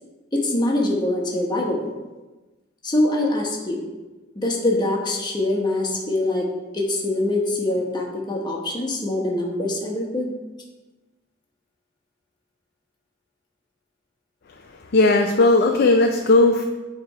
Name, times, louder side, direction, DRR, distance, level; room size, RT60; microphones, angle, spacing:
voice 1, 0.3-1.9 2.8-3.9 4.3-6.5 6.7-10.3, left 1 dB, 25° left, 0 dB, 1.1 m, -24 dB
voice 2, 14.9-16.6, left 2 dB, 55° left, 3 dB, 0.5 m, -16 dB
8.6 x 3.3 x 4.7 m, 1.2 s
head